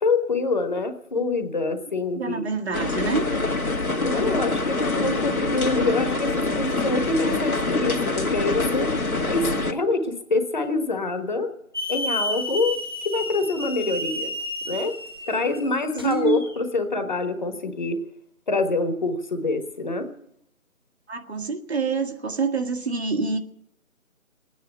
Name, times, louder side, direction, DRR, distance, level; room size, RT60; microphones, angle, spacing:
voice 1, 0.0-2.5 3.9-8.9 9.3-11.5 11.9-12.8 13.0-14.3 14.7-14.9 15.3-18.0 18.5-20.1, left 3 dB, 35° left, 7 dB, 1.3 m, -25 dB
voice 2, 2.1-3.2 16.0-16.4 21.1-23.4, right 4 dB, 50° right, 5 dB, 1.6 m, -26 dB
sound 1, 2.7-9.7, left 3 dB, 85° left, 1.9 m, -25 dB
Hiss / Alarm, 11.7-16.5, left 1 dB, 20° right, 0.7 m, -31 dB
19.0 x 9.7 x 8.0 m, 0.74 s
figure-of-eight pair, 160°, 42 cm